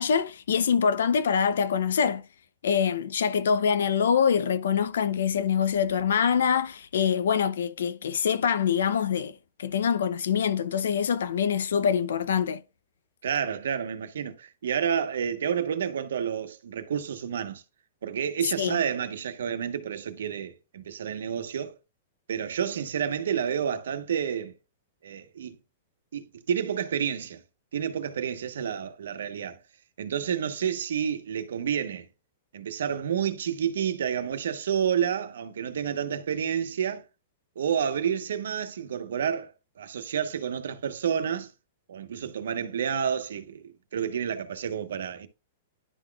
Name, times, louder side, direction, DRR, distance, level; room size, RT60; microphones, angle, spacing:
voice 1, 0.0-2.2 2.6-9.3 9.6-12.6 18.6-18.8, left 7 dB, 90° left, 0.5 m, -24 dB
voice 2, 13.2-17.6 18.0-21.7 22.3-24.5 25.0-25.6 26.1-27.4 27.7-29.6 30.0-32.1 32.5-37.0 37.6-39.5 39.8-41.5 41.9-45.3, right 8 dB, 85° right, 0.9 m, -29 dB
11.0 x 3.9 x 2.3 m
supercardioid pair, 180°, 0 cm